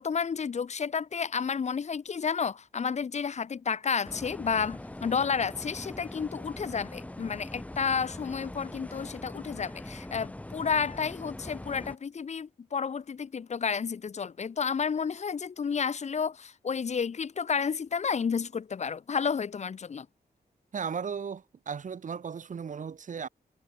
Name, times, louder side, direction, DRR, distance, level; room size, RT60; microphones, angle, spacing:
voice 1, 0.0-20.1, left 6 dB, 45° left, 0.7 m, -31 dB
sound 1, 4.0-12.0, left 1 dB, 10° left, 1.0 m, -42 dB
voice 2, 20.7-23.3, right 6 dB, 50° right, 1.0 m, -36 dB
wide cardioid pair, 175°, 16 cm